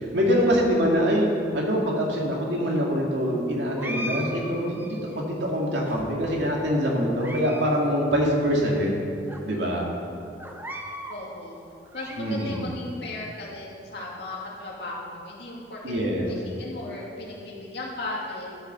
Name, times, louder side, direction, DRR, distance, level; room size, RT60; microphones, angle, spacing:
voice 1, 0.1-1.3 1.5-9.0 9.4-9.8 12.2-12.7 15.8-16.3, equal, 75° right, -2 dB, 2.4 m, -24 dB
sound 1, 3.8-5.2 5.9-6.5 7.0-7.7 8.0-8.1 8.8-8.9 9.3-9.4 10.4-11.2 11.7-12.6, equal, 10° right, 0.9 m, -38 dB
voice 2, 11.1-15.9 16.2-18.5, left 2 dB, 60° left, -4 dB, 2.6 m, -36 dB
12.0 x 7.2 x 6.9 m, 2.5 s
head